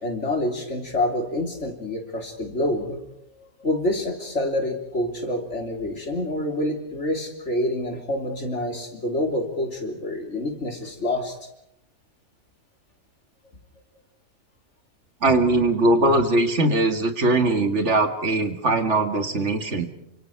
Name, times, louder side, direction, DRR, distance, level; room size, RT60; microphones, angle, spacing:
voice 1, 0.0-3.0 3.3-11.4, left 1 dB, 55° left, 4 dB, 3.6 m, -27 dB
voice 2, 15.2-19.9, right 2 dB, 55° right, 8 dB, 2.3 m, -21 dB
28.5 x 25.5 x 4.7 m, 0.79 s
omnidirectional pair, 1.5 m